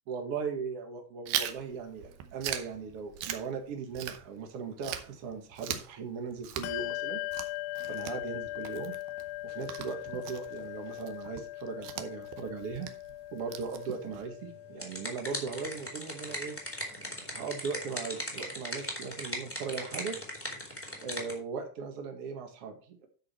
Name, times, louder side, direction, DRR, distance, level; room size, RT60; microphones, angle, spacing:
voice 1, 0.1-7.2 7.9-8.9 9.4-12.9 13.3-16.5 17.3-20.1 20.9-23.1, right 5 dB, 60° right, 3 dB, 1.6 m, -38 dB
Chewing mastication, 1.3-4.5 4.8-14.3, right 11 dB, 85° right, 2.0 m, -40 dB
Bell, 6.6-16.6, left 17 dB, 90° left, 2.4 m, -40 dB
sound 1, 14.5-21.3, equal, 5° left, 0.9 m, -39 dB
12.5 x 5.1 x 4.4 m, 0.40 s
omnidirectional pair, 5.3 m